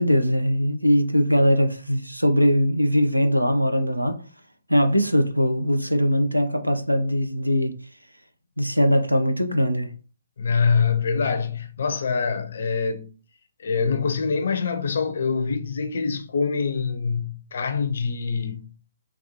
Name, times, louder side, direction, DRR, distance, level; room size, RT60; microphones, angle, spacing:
voice 1, 0.0-4.2 4.7-7.7 8.6-9.9, equal, 85° right, 0.5 m, -21 dB
voice 2, 10.4-13.1 13.6-18.9, left 5 dB, 50° left, 0.5 m, -25 dB
4.0 x 2.3 x 2.8 m
figure-of-eight pair, 130°, 0 cm